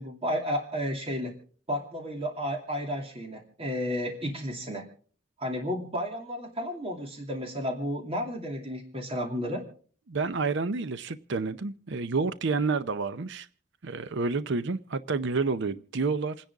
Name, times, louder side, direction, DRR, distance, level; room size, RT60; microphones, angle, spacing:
voice 1, 0.0-1.3 1.7-4.9 5.4-9.6, equal, 30° right, 2.5 m, -32 dB
voice 2, 10.1-13.5 13.8-16.4, right 4 dB, 60° right, 0.6 m, -29 dB
28.5 x 10.5 x 3.5 m
head